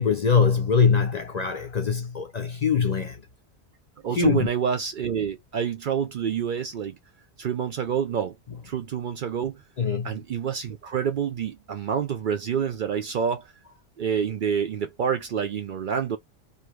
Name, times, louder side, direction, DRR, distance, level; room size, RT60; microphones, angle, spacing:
voice 1, 0.0-3.2 4.2-4.5 9.8-10.1, left 6 dB, 50° left, 0.6 m, -22 dB
voice 2, 4.0-7.0 7.4-8.4 8.6-9.6 10.0-13.5 14.0-16.2, right 7 dB, 60° right, 0.6 m, -27 dB
2.5 x 2.5 x 3.1 m
omnidirectional pair, 1.2 m